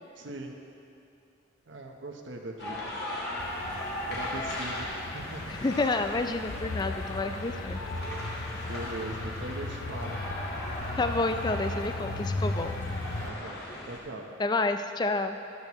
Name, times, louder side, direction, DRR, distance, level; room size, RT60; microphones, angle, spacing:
voice 1, 0.1-0.5 1.7-3.0 4.1-5.4 8.7-10.2 13.2-14.3, right 2 dB, 65° right, 2 dB, 1.1 m, -40 dB
sound 1, 2.6-14.0, left 1 dB, 55° left, 1.8 m, -38 dB
sound 2, 3.4-13.3, left 2 dB, 90° left, 0.6 m, -37 dB
voice 2, 5.6-7.8 11.0-12.8 14.4-15.4, left 2 dB, 20° left, 8 dB, 0.4 m, -29 dB
13.0 x 12.5 x 3.1 m, 2.6 s
head